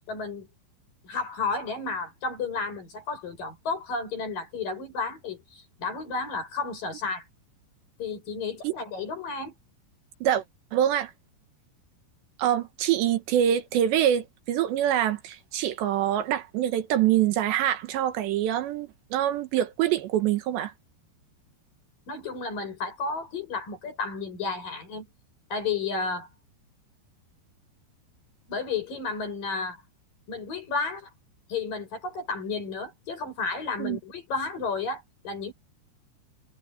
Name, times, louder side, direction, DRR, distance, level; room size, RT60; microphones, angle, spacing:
voice 1, 0.1-0.5 1.0-7.3 8.0-9.5 22.1-25.1 25.5-26.3 28.5-29.8 30.3-31.1 31.5-35.5, left 4 dB, 50° left, 9.0 m, -32 dB
voice 2, 10.7-11.1 12.4-20.7 33.8-34.0, right 11 dB, 75° right, 3.4 m, -25 dB
omnidirectional pair, 5.2 m